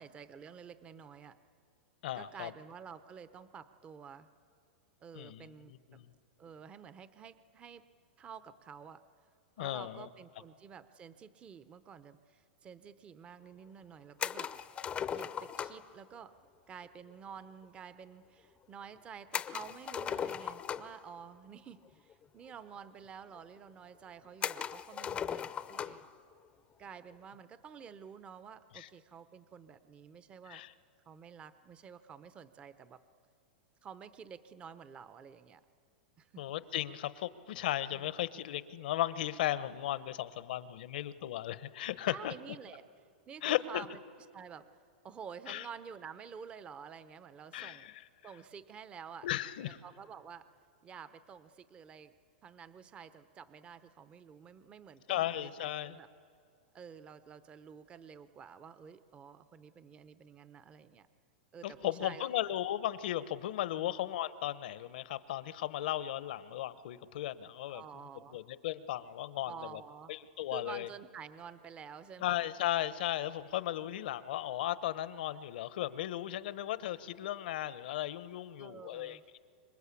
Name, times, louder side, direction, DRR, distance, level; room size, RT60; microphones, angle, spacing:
voice 1, 0.0-1.4 2.1-4.3 5.0-5.7 6.4-7.8 8.2-9.0 9.6-14.5 15.1-16.3 16.7-26.1 26.8-30.6 31.1-33.0 33.8-35.6 36.2-36.4 37.9-38.1 42.1-42.9 43.3-43.9 44.3-44.7 45.0-47.9 48.2-49.3 49.8-50.5 50.8-52.1 52.4-56.1 56.7-61.1 61.5-62.3 63.8-63.9 67.7-68.4 69.5-70.1 70.5-72.3 78.6-79.2, right 7 dB, 20° right, 13 dB, 0.7 m, -50 dB
voice 2, 2.0-2.5 5.2-5.5 5.9-6.1 9.6-10.1 28.7-28.9 30.5-30.7 36.4-42.3 43.4-43.8 45.5-45.6 47.5-47.9 49.2-49.8 55.1-56.0 61.6-67.8 68.3-69.8 70.1-70.9 72.2-79.4, left 13 dB, 70° left, 15 dB, 1.0 m, -36 dB
sound 1, 14.2-15.9 19.3-21.1 22.1-22.2 22.5-22.6 23.4-23.5 24.4-26.1, left 8 dB, 20° left, 0.6 m, -38 dB
26.5 x 22.5 x 8.5 m, 2.4 s
supercardioid pair, 140°, 5 cm